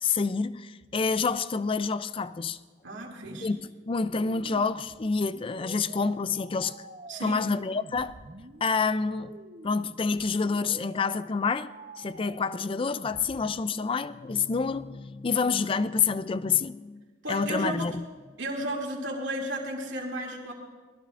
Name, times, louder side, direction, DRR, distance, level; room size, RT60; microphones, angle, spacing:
voice 1, 0.0-2.6 3.4-3.6 3.9-6.8 7.2-8.1 8.6-9.3 9.6-17.0 17.3-17.9, left 5 dB, 30° left, 0.4 m, -28 dB
voice 2, 2.8-3.5 7.1-7.4 17.2-17.8 18.4-20.5, right 1 dB, 80° right, 2.5 m, -33 dB
sound 1, 3.2-13.8, right 2 dB, 40° right, 0.9 m, -48 dB
25.0 x 20.0 x 2.5 m
head